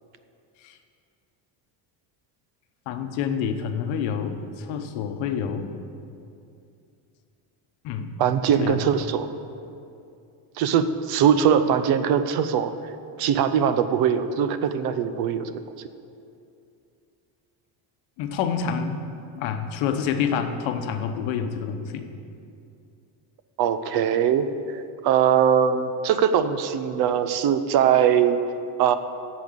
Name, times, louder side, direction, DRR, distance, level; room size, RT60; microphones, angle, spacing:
voice 1, 2.9-5.7 7.8-8.1 8.6-8.8 18.2-19.0 19.3-22.1, left 7 dB, 75° left, 7 dB, 0.9 m, -28 dB
voice 2, 8.2-9.3 10.6-12.7 13.2-15.5 23.6-24.5 25.0-28.4 28.8-29.0, right 8 dB, 55° right, 11 dB, 0.6 m, -21 dB
8.5 x 6.8 x 8.0 m, 2.6 s
cardioid pair, 175°, 47 cm